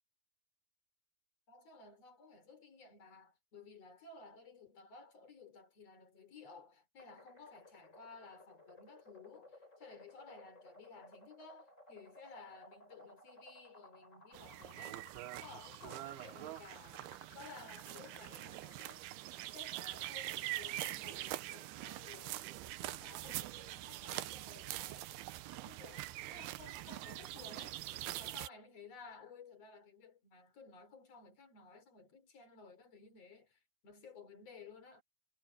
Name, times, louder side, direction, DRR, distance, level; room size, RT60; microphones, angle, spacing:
voice 1, 1.5-15.1 15.4-19.1 19.5-25.1 25.5-35.0, left 4 dB, 40° left, 5.1 m, -56 dB
sound 1, 7.0-19.0, left 1 dB, 15° left, 7.7 m, -59 dB
sound 2, 14.3-28.5, right 16 dB, 85° right, 2.8 m, -44 dB
omnidirectional pair, 4.4 m